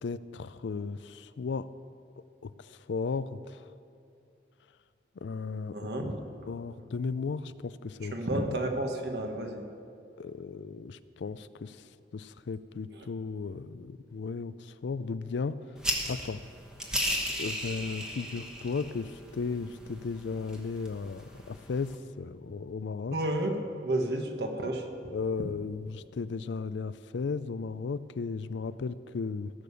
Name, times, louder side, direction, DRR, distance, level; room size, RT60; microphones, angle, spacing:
voice 1, 0.0-1.7 2.4-2.5 2.9-3.6 5.2-5.9 6.5-8.1 8.4-8.6 10.2-11.8 12.1-15.6 16.1-16.4 17.4-23.2 25.1-29.5, left 4 dB, 75° left, 15 dB, 0.4 m, -35 dB
voice 2, 5.7-6.1 8.0-9.6 12.9-13.1 23.1-24.9, right 1 dB, 60° right, 4 dB, 1.3 m, -31 dB
sound 1, 15.8-22.0, equal, 5° right, 1.1 m, -36 dB
16.0 x 6.7 x 6.9 m, 2.5 s
head